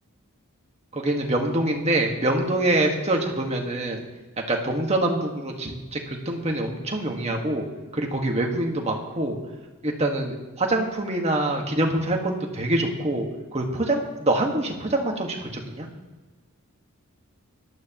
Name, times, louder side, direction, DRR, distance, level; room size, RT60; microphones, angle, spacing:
voice 1, 0.9-4.0 4.5-7.7 7.9-9.4 9.8-15.9, right 1 dB, 30° right, 1 dB, 1.6 m, -25 dB
17.0 x 12.0 x 3.0 m, 1.2 s
head